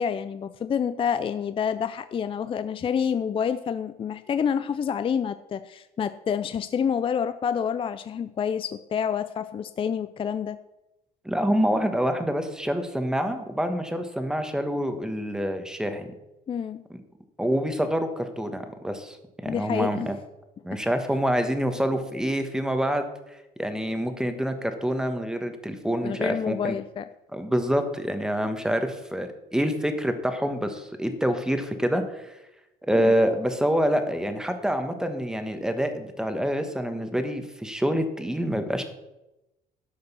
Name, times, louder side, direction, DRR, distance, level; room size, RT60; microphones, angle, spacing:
voice 1, 0.0-10.6 16.5-16.8 19.5-20.1 20.7-20.8 26.0-27.1 33.0-33.1, left 7 dB, 30° left, 12 dB, 0.4 m, -28 dB
voice 2, 11.2-16.1 17.4-20.2 20.6-23.1 23.6-26.7 27.3-32.3 32.8-38.8, equal, 5° right, 8 dB, 1.3 m, -26 dB
12.5 x 5.3 x 6.8 m, 0.96 s
cardioid pair, 110°, 17 cm